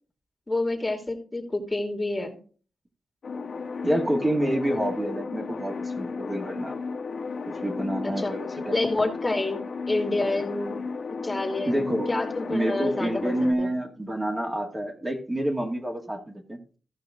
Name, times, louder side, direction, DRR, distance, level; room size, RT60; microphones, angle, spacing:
voice 1, 0.5-2.4 8.2-8.3 8.7-10.9 11.2-13.7, left 2 dB, 20° left, 2 dB, 2.6 m, -28 dB
sound 1, 3.2-13.5, left 4 dB, 60° left, 1.7 m, -34 dB
voice 2, 3.8-6.7 7.5-8.8 11.7-12.1 12.5-16.6, right 1 dB, 20° right, 1 dB, 2.3 m, -28 dB
15.0 x 5.6 x 3.8 m, 0.40 s
cardioid pair, 75°, 0 cm